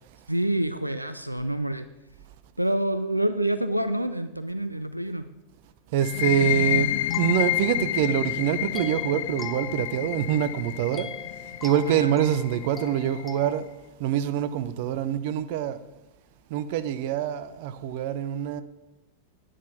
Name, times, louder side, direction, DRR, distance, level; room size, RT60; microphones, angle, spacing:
voice 1, 0.3-1.9 2.6-5.2 11.9-12.1, right 1 dB, 90° right, 0.5 m, -27 dB
voice 2, 5.9-11.1 11.6-13.7 14.0-15.8 16.5-18.6, right 10 dB, 50° right, 0.7 m, -25 dB
sound 1, 6.0-13.5, left 14 dB, 55° left, 0.3 m, -29 dB
sound 2, 7.1-8.2 8.7-10.5 10.9-13.6, left 3 dB, 10° left, 1.1 m, -43 dB
9.8 x 7.4 x 6.8 m
figure-of-eight pair, 90°, 0 cm